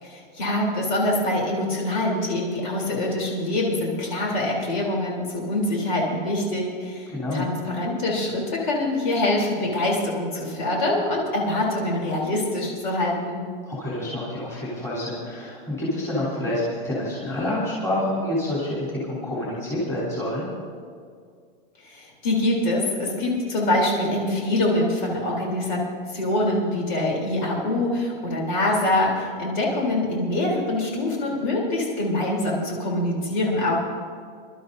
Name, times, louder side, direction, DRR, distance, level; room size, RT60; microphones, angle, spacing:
voice 1, 0.0-13.4 21.8-25.8 26.1-33.7, left 1 dB, 50° left, -2 dB, 3.5 m, -24 dB
voice 2, 7.1-7.5 13.7-20.5, left 1 dB, 10° left, -9 dB, 3.5 m, -28 dB
26.5 x 12.5 x 2.7 m, 2.1 s
supercardioid pair, 180°, 30 cm